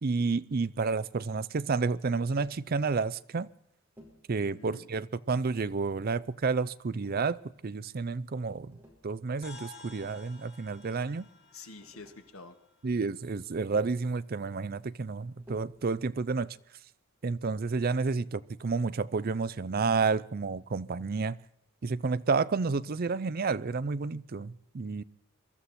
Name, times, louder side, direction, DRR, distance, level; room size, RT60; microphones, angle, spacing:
voice 1, 0.0-3.5 4.3-8.8 9.0-11.3 12.8-16.5 17.2-21.4 21.8-25.0, right 4 dB, 45° right, 0.5 m, -30 dB
Tap, 2.3-2.6 4.0-4.3 5.3-5.9 6.9-7.7 8.7-9.1 9.8-10.3 11.4-11.5 11.8-12.3 13.6-14.0 15.4-15.9 17.5-17.8, equal, 10° right, 4.6 m, -56 dB
voice 2, 4.4-4.9 11.5-12.6, left 3 dB, 85° left, 1.8 m, -48 dB
sound 1, 9.4-14.0, left 2 dB, 45° left, 3.4 m, -54 dB
22.5 x 13.0 x 4.2 m
head